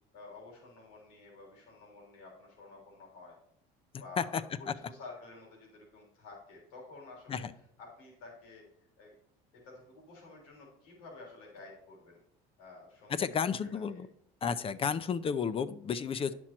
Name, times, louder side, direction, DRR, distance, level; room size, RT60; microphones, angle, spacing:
voice 1, 0.1-3.3 4.0-7.4 7.8-8.6 9.0-9.1 9.6-12.2 12.6-13.1 13.9-14.0 16.3-16.4, left 3 dB, 85° left, -2 dB, 3.4 m, -51 dB
voice 2, 13.1-14.1 14.4-16.3, left 6 dB, 35° left, 14 dB, 0.5 m, -32 dB
9.9 x 6.2 x 4.3 m, 0.68 s
supercardioid pair, 100°, 17 cm